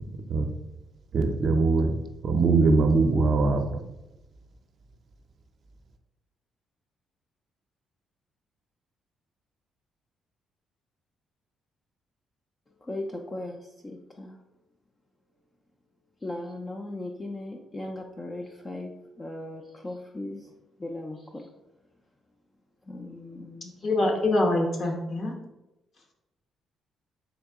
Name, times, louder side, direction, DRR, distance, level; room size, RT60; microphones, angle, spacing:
voice 1, 1.1-1.9 2.2-3.8, right 3 dB, 55° right, 5 dB, 0.5 m, -22 dB
voice 2, 12.8-14.4 16.2-20.5 20.8-21.5 22.9-23.9, left 1 dB, 25° left, 1 dB, 0.4 m, -38 dB
voice 3, 23.8-25.3, left 2 dB, 50° left, 1 dB, 0.9 m, -24 dB
3.8 x 2.7 x 3.5 m, 0.96 s
cardioid pair, 90°, 0 cm